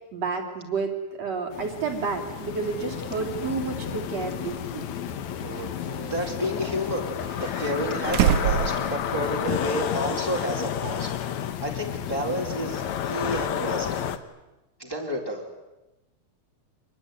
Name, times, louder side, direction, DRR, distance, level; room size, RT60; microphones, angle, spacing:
voice 1, 0.1-0.9 1.2-4.9, right 5 dB, 55° right, 1 dB, 4.3 m, -30 dB
sound 1, 1.5-14.2, left 9 dB, 70° left, 2.5 m, -31 dB
sound 2, 4.4-4.5 5.4-6.3 7.2-9.6 9.9-10.0 11.5-11.6, right 9 dB, 75° right, 2.5 m, -27 dB
voice 2, 6.0-11.1 11.6-13.9 14.8-15.5, equal, 5° left, 0 dB, 3.8 m, -30 dB
27.0 x 21.0 x 9.4 m, 0.99 s
omnidirectional pair, 3.5 m